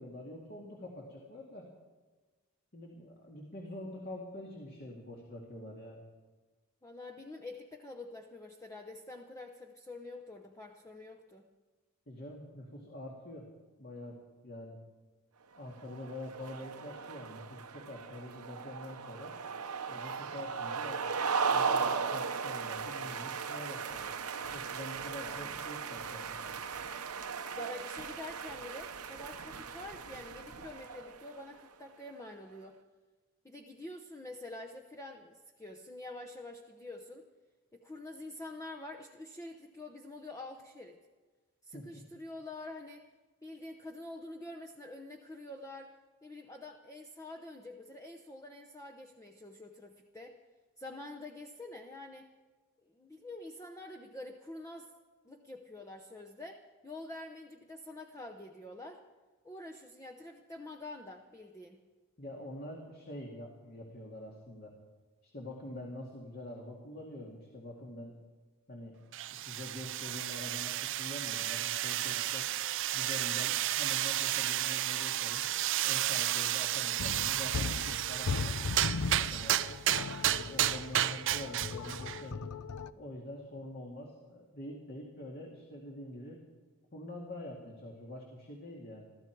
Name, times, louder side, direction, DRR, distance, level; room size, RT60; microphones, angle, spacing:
voice 1, 0.0-1.7 2.7-6.0 12.1-13.5 13.8-14.8 15.6-19.3 19.9-24.1 24.5-26.4 41.7-42.0 62.2-64.7 65.2-68.1 68.7-68.9 69.3-72.5 72.9-75.4 75.8-78.5 79.1-79.8 80.3-82.4 83.0-86.4 86.9-89.1, left 1 dB, 45° left, -1 dB, 2.2 m, -45 dB
voice 2, 6.8-11.5 25.2-25.6 27.5-32.8 33.4-37.2 37.7-41.0 41.6-43.0 43.4-45.9 46.2-50.4 50.8-52.3 52.8-54.9 55.2-59.0 59.4-61.8, left 2 dB, 15° left, 1 dB, 0.8 m, -47 dB
sound 1, 15.8-31.4, right 5 dB, 90° right, 1.0 m, -37 dB
sound 2, 69.1-82.3, right 13 dB, 55° right, 0.5 m, -32 dB
sound 3, 77.0-82.9, left 5 dB, 80° left, 0.6 m, -38 dB
22.0 x 14.0 x 4.7 m, 1.3 s
head